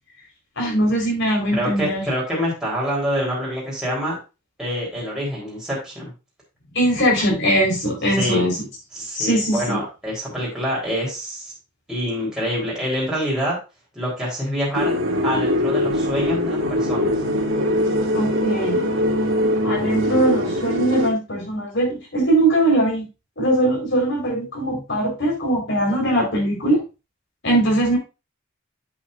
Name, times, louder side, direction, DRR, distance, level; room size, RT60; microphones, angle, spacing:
voice 1, 0.6-2.0 6.7-8.6 9.1-9.8 18.1-18.9 19.6-23.0 23.4-26.8 27.4-28.0, right 1 dB, 60° left, -1 dB, 4.6 m, -21 dB
voice 2, 1.5-4.2 4.6-6.1 8.2-8.5 8.9-11.5 11.9-13.6 13.9-15.0 15.2-17.1, equal, 5° right, -6 dB, 3.9 m, -26 dB
sound 1, 14.7-21.1, left 1 dB, 90° right, 2.2 m, -22 dB
8.5 x 7.9 x 2.6 m, 0.28 s
head